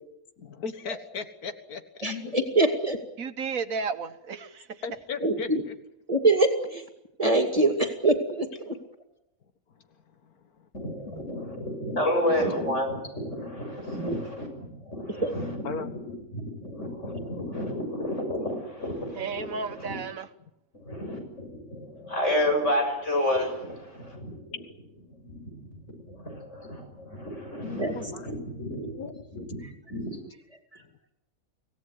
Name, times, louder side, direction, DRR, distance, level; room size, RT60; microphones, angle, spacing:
voice 1, 0.4-2.1 4.8-5.7 10.2-10.3 10.6-10.7 15.6-15.9 21.7-22.1 27.9-28.2 28.9-29.2, left 5 dB, 90° left, 9 dB, 1.9 m, -37 dB
voice 2, 2.0-3.0 5.2-5.6 6.1-6.8 7.2-8.8 11.1-11.2 12.4-12.5 14.0-14.2 15.2-15.4 27.6-27.9, right 2 dB, 25° right, 5 dB, 2.4 m, -24 dB
voice 3, 3.2-4.8 19.1-20.3, right 5 dB, 70° right, 11 dB, 1.5 m, -33 dB
voice 4, 10.7-19.9 20.9-24.6 25.2-25.8 26.1-29.6 29.9-30.2, left 1 dB, 55° left, 3 dB, 7.2 m, -31 dB
25.5 x 17.5 x 9.6 m, 0.87 s
omnidirectional pair, 1.5 m